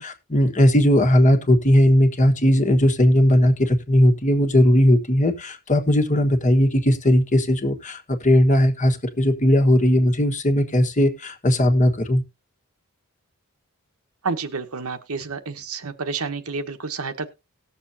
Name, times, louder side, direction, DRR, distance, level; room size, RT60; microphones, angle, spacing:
voice 1, 0.0-12.2, equal, 35° left, 1.4 m, -18 dB
voice 2, 14.2-17.3, right 4 dB, 80° right, 1.2 m, -29 dB
19.0 x 6.9 x 2.7 m
head